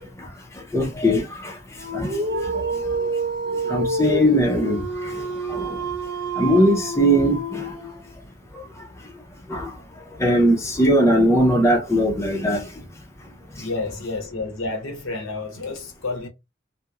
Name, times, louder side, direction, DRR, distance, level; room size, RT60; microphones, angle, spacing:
voice 1, 0.7-1.5 1.9-2.1 3.7-4.8 5.1-5.2 5.5-5.7 6.4-7.6 9.5-9.7 10.2-12.6, equal, 15° left, 0.5 m, -19 dB
Dog, 1.8-8.1, right 2 dB, 55° right, 0.5 m, -28 dB
voice 2, 13.6-16.3, left 3 dB, 80° left, 0.9 m, -30 dB
2.9 x 2.0 x 2.3 m
head